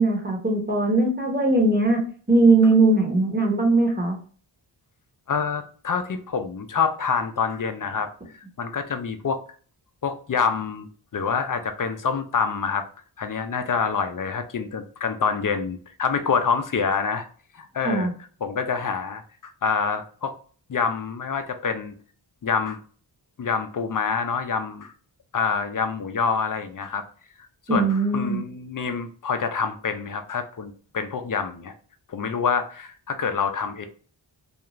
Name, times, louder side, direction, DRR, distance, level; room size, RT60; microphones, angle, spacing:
voice 1, 0.0-4.2 17.8-18.1 27.7-28.4, right 2 dB, 20° right, 1 dB, 0.8 m, -20 dB
voice 2, 5.3-8.1 8.6-9.4 10.0-10.9 11.1-12.8 13.2-17.2 17.6-18.1 18.4-20.3 20.7-21.9 22.4-22.8 23.4-24.9 25.3-27.0 27.7-31.7 32.1-33.8, left 5 dB, 45° left, 8 dB, 0.4 m, -26 dB
2.4 x 2.3 x 2.9 m, 0.42 s
wide cardioid pair, 55°, 48 cm